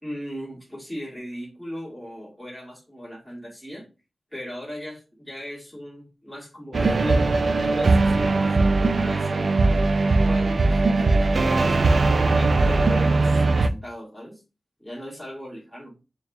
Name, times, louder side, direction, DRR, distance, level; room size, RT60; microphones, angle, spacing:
voice 1, 0.0-3.9 4.3-7.3 7.6-9.6 10.2-11.9 12.3-14.4 14.8-15.9, equal, ahead, 2.0 m, -37 dB
sound 1, 6.7-13.7, right 3 dB, 55° right, 0.4 m, -20 dB
6.7 x 2.4 x 2.6 m
wide cardioid pair, 115°, 0 cm